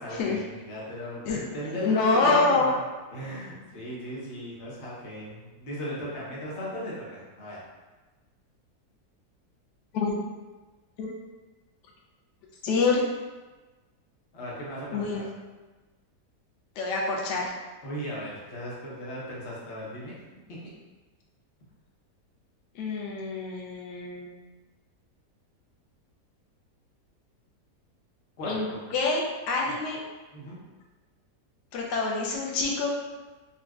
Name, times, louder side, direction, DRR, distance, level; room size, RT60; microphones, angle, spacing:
voice 1, 0.0-2.8 3.1-7.6 14.3-15.2 17.8-20.1 20.5-20.6 28.4-28.8 30.3-30.6, equal, 50° left, -5 dB, 1.0 m, -37 dB
voice 2, 1.7-2.7 9.9-10.1 11.0-11.1 12.6-13.0 14.9-15.3 16.8-17.5 22.7-24.3 28.4-30.0 31.7-33.0, left 3 dB, 90° left, -1 dB, 1.2 m, -26 dB
4.1 x 2.4 x 2.3 m, 1.2 s
omnidirectional pair, 1.7 m